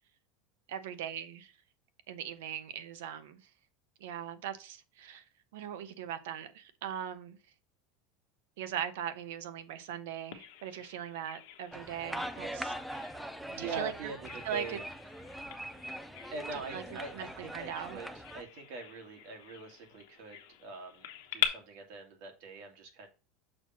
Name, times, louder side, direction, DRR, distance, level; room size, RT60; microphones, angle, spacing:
voice 1, 0.7-1.5 2.1-3.4 4.0-5.2 5.5-7.4 8.6-12.7 13.6-14.1 14.4-14.8 16.7-16.8 17.1-18.0, right 9 dB, 85° right, 0.8 m, -40 dB
Bird vocalization bird call bird song, 10.3-21.5, left 12 dB, 70° left, 1.1 m, -43 dB
sound 1, 11.7-18.4, equal, ahead, 0.4 m, -42 dB
voice 2, 13.5-14.9 16.3-23.1, right 4 dB, 55° right, 1.9 m, -43 dB
6.5 x 3.1 x 5.7 m
supercardioid pair, 175°, 0 cm